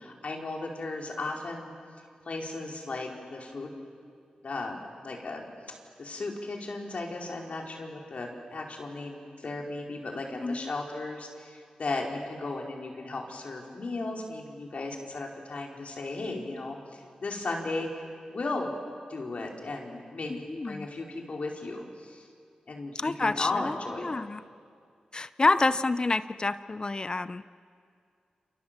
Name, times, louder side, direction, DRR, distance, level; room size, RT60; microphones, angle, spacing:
voice 1, 0.0-1.7 2.2-3.7 4.4-5.5 6.0-18.7 19.1-22.2 22.7-24.1, left 2 dB, 60° left, 0 dB, 4.5 m, -36 dB
voice 2, 10.4-10.7 20.3-20.9 22.9-24.4 25.1-27.4, left 3 dB, 35° left, 14 dB, 0.7 m, -28 dB
28.5 x 28.0 x 7.5 m, 2.2 s
cardioid pair, 70°, 3 cm